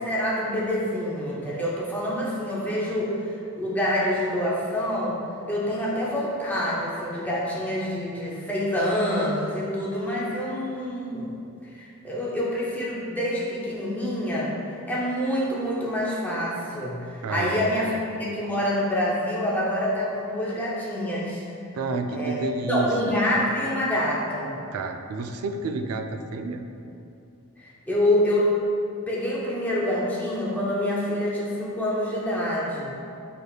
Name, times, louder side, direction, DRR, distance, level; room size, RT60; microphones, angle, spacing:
voice 1, 0.0-5.2 5.5-11.3 11.6-21.4 22.1-22.4 22.7-24.6 27.6-28.6 29.1-32.9, left 1 dB, 10° left, -6 dB, 0.5 m, -26 dB
voice 2, 17.2-17.7 21.7-22.9 24.7-26.6, right 3 dB, 90° right, 6 dB, 0.4 m, -30 dB
6.1 x 3.4 x 2.3 m, 2.5 s
head